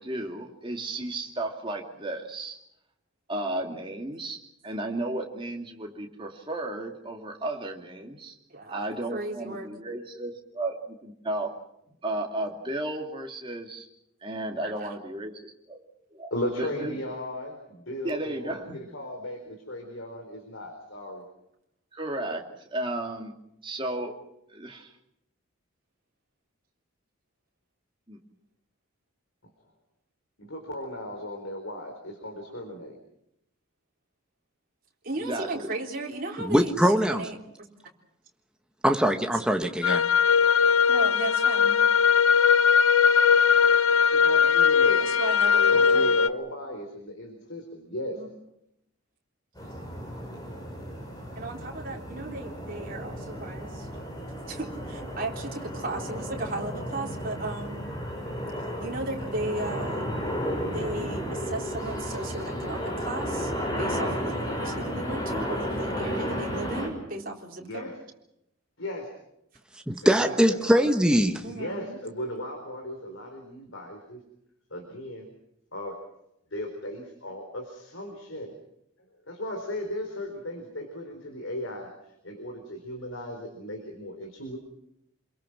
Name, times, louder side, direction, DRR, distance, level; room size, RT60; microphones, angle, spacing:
voice 1, 0.0-2.6 3.3-4.4 4.6-8.3 8.7-11.5 12.0-13.9 14.2-15.8 16.1-16.3 16.6-17.0 18.0-18.8 21.9-23.3 23.6-24.1 24.5-24.9 28.1-28.2 35.2-35.7, right 1 dB, 25° right, 1 dB, 2.7 m, -34 dB
voice 2, 8.5-8.8 9.1-9.7 14.6-14.9 35.0-37.7 39.4-39.7 40.9-41.8 45.0-46.0 48.1-48.3 51.4-53.9 54.5-57.9 58.8-60.1 60.7-63.5 63.8-67.9 70.2-70.4 71.4-72.0, right 2 dB, 45° right, -1 dB, 3.7 m, -35 dB
voice 3, 16.3-21.2 30.4-33.0 44.1-45.0 45.7-48.2 67.6-68.0 68.8-69.1 70.0-70.9 71.4-74.2 74.7-75.3 75.7-76.0 76.5-78.5 79.3-84.6, left 1 dB, 75° left, 3 dB, 4.2 m, -36 dB
voice 4, 36.4-37.3 38.8-40.0 69.9-71.4, equal, 5° right, 5 dB, 1.3 m, -22 dB
sound 1, 39.8-46.3, left 6 dB, 90° left, 0.8 m, -20 dB
sound 2, 49.6-66.9, equal, 20° left, 5.6 m, -33 dB
28.0 x 22.5 x 6.0 m, 0.79 s
head